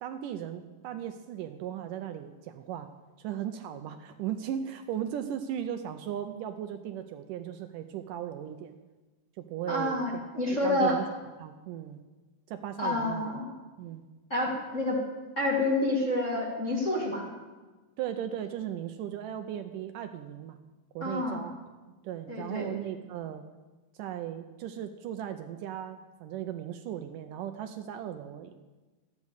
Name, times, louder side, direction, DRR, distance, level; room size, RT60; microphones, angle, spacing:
voice 1, 0.0-2.9 3.2-8.7 9.4-10.2 10.6-11.1 11.4-12.0 12.5-13.3 13.8-14.1 18.0-20.6 21.0-21.6 22.0-23.4 24.0-28.5, right 10 dB, 75° right, 8 dB, 2.1 m, -37 dB
voice 2, 9.7-11.0 12.8-13.5 14.3-15.0 15.3-17.3 21.0-21.5 22.3-22.7, left 1 dB, 30° left, -4 dB, 1.6 m, -28 dB
13.5 x 8.4 x 8.1 m, 1.2 s
omnidirectional pair, 4.1 m